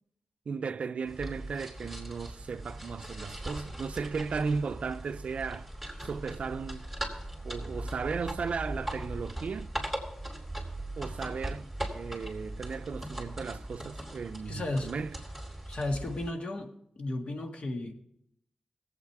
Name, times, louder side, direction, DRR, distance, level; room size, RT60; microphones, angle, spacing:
voice 1, 0.5-5.7 6.0-6.9 7.4-9.7 11.0-15.2, right 5 dB, 65° right, 0.4 m, -35 dB
sound 1, 1.1-16.3, right 1 dB, 5° left, 2.8 m, -39 dB
voice 2, 14.5-14.9 15.7-16.7 17.0-18.0, left 2 dB, 55° left, 1.7 m, -34 dB
19.5 x 8.1 x 4.6 m
wide cardioid pair, 110°, 2 cm